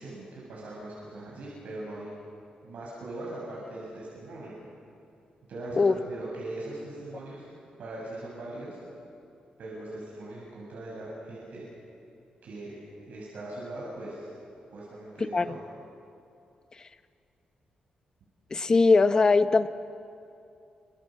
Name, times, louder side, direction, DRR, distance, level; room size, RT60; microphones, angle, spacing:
voice 1, 0.0-2.1 2.6-4.5 5.5-7.5 7.8-8.8 9.6-11.6 12.4-12.7 13.0-14.3 14.7-15.6, right 2 dB, 70° right, -5 dB, 7.8 m, -40 dB
voice 2, 18.5-19.7, left 4 dB, 30° left, 10 dB, 1.0 m, -21 dB
29.0 x 26.0 x 7.8 m, 2.6 s
wide cardioid pair, 145°, 3 cm